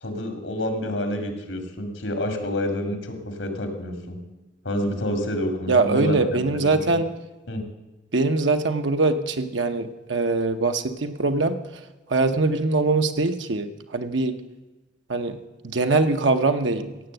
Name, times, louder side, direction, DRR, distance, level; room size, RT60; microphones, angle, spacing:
voice 1, 0.0-4.2 4.6-7.0 7.5-7.6, left 1 dB, 80° left, 6 dB, 2.4 m, -28 dB
voice 2, 5.7-7.1 8.1-11.8 12.1-14.4 15.1-15.4 15.6-16.9, right 3 dB, 75° right, 6 dB, 0.8 m, -22 dB
16.5 x 7.7 x 7.8 m, 1.1 s
head